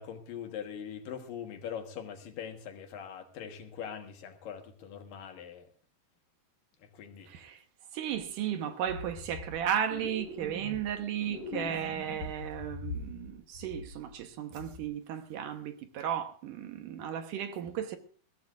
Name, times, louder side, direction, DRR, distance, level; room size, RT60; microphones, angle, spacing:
voice 1, 0.0-5.7 6.9-7.3, left 8 dB, 70° left, 3.1 m, -42 dB
voice 2, 7.3-7.6 7.9-18.0, right 9 dB, 70° right, 2.5 m, -35 dB
sound 1, 8.2-8.3 8.9-9.6 9.9-10.9 11.2-13.3 13.5-14.2 14.6-14.8, left 3 dB, 55° left, 4.5 m, -42 dB
22.0 x 16.0 x 2.5 m
omnidirectional pair, 4.1 m